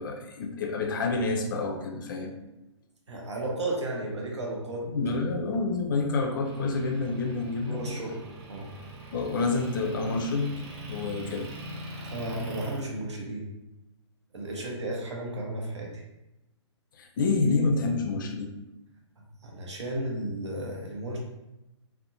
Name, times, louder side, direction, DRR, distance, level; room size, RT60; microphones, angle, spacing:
voice 1, 0.0-2.3 4.9-7.8 9.1-10.6 10.9-11.5 17.0-18.5, left 3 dB, 45° left, 4 dB, 0.4 m, -28 dB
voice 2, 3.1-4.9 7.7-8.2 8.5-8.7 12.1-13.5 14.3-15.9 19.4-21.2, right 1 dB, 70° right, -1 dB, 0.7 m, -33 dB
Motor vehicle (road) / Engine, 6.4-12.8, right 1 dB, 25° right, 0.4 m, -43 dB
2.5 x 2.1 x 2.6 m, 0.94 s
figure-of-eight pair, 125°, 15 cm